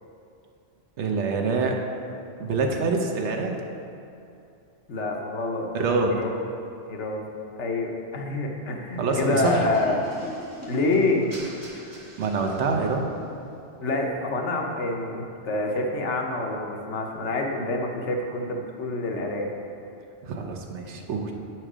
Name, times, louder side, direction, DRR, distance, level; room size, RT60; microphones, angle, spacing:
voice 1, 1.0-1.8 2.4-3.6 5.7-6.2 9.0-9.7 12.2-13.1 20.2-21.3, right 4 dB, 80° right, 2 dB, 1.1 m, -25 dB
voice 2, 4.9-5.7 6.1-6.3 6.9-7.2 7.6-10.0 10.7-11.3 13.8-19.5, left 2 dB, 85° left, 1 dB, 1.1 m, -27 dB
sound 1, 9.1-13.1, equal, 15° right, 1.5 m, -43 dB
7.8 x 4.5 x 4.9 m, 2.6 s
omnidirectional pair, 1.2 m